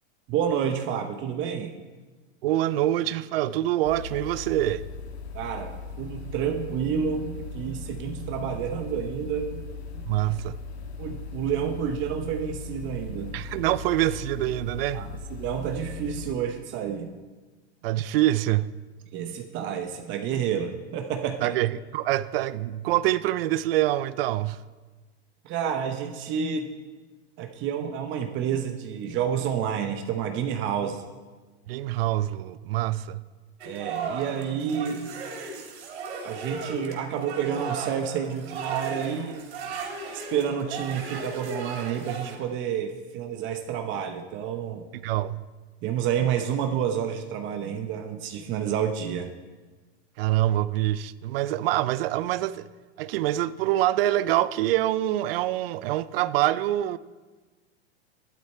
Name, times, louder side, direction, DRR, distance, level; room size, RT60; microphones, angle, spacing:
voice 1, 0.3-1.7 5.3-9.6 9.9-10.0 11.0-13.4 14.9-17.1 19.1-21.5 25.4-26.7 27.4-31.0 33.6-35.1 36.2-39.5 40.1-44.8 45.8-49.3, right 8 dB, 35° right, 1.0 m, -29 dB
voice 2, 2.4-4.8 10.0-10.5 13.3-15.0 17.8-18.7 21.4-24.6 31.7-33.2 44.9-45.4 50.2-52.7 53.0-57.0, right 14 dB, 60° right, 0.6 m, -25 dB
sound 1, 3.8-16.4, left 4 dB, 70° left, 1.8 m, -39 dB
sound 2, 33.6-42.4, right 4 dB, 75° right, 3.4 m, -36 dB
12.5 x 12.0 x 4.4 m
hypercardioid pair, 135°, 33 cm